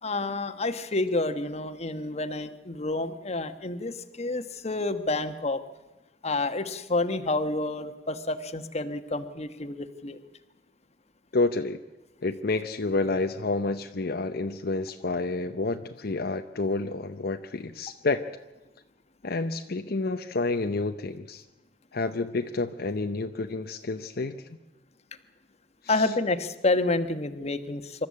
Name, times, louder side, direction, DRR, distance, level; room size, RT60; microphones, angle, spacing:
voice 1, 0.0-5.6 6.2-10.2 25.9-28.1, left 2 dB, 35° left, 10 dB, 1.2 m, -29 dB
voice 2, 11.3-11.8 12.2-18.2 19.2-21.4 21.9-24.6 25.8-26.1, left 3 dB, 60° left, 7 dB, 0.8 m, -29 dB
25.5 x 13.0 x 8.5 m, 1.1 s
head